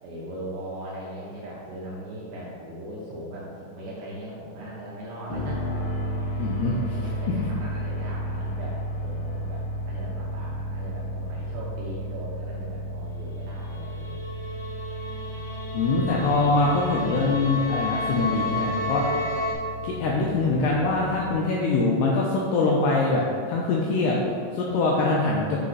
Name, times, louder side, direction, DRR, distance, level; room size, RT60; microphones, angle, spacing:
voice 1, 0.0-5.6 6.3-14.2 15.0-15.4 19.1-19.4 24.6-25.3, right 1 dB, 75° right, -6 dB, 2.2 m, -39 dB
sound 1, 5.3-21.4, equal, 50° left, 3.0 m, -33 dB
voice 2, 6.4-6.7 7.4-7.5 15.7-19.0 19.8-25.6, left 3 dB, 90° left, -3 dB, 2.3 m, -23 dB
sound 2, 13.6-19.5, left 2 dB, 70° left, 1.4 m, -31 dB
9.8 x 4.2 x 3.9 m, 2.3 s
omnidirectional pair, 5.4 m